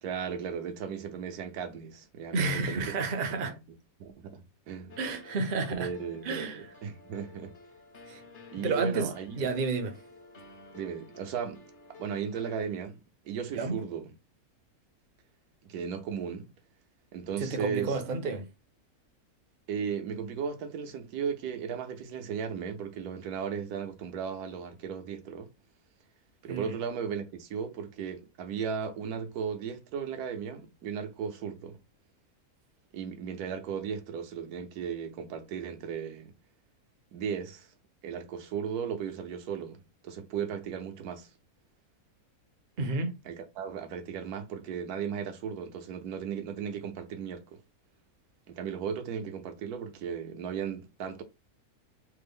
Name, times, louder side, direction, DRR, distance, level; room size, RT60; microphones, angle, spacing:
voice 1, 0.0-3.0 3.2-3.6 4.0-5.0 5.7-7.6 8.5-9.5 10.7-11.6 12.0-14.1 15.7-16.5 17.1-18.0 19.7-25.5 26.4-31.8 32.9-36.3 37.1-37.7 38.0-39.8 40.0-41.3 43.2-47.6 48.5-51.2, right 7 dB, 85° right, 1.2 m, -36 dB
voice 2, 2.3-3.5 5.0-5.9 6.2-6.7 8.1-8.2 8.6-9.1 9.4-10.0 13.5-13.8 17.4-18.5 26.5-26.8 42.8-43.1, right 3 dB, 55° right, 0.6 m, -30 dB
sound 1, 4.9-12.6, left 3 dB, 45° left, 0.7 m, -52 dB
3.4 x 2.0 x 3.4 m
omnidirectional pair, 1.6 m